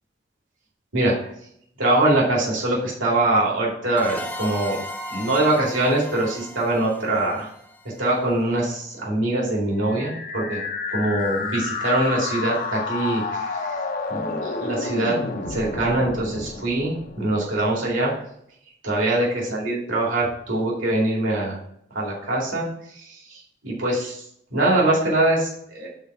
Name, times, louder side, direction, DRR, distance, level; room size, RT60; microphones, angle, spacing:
voice 1, 0.9-1.3 1.8-4.8 5.1-7.5 8.0-10.6 10.9-13.8 14.1-15.2 15.5-18.1 18.8-21.6 21.9-24.2 24.5-25.9, right 2 dB, 80° right, -4 dB, 2.4 m, -23 dB
sound 1, 4.0-8.5, left 1 dB, 10° left, 0.6 m, -36 dB
sound 2, 9.8-17.8, left 4 dB, 45° left, 0.7 m, -30 dB
5.5 x 4.4 x 5.9 m, 0.70 s
head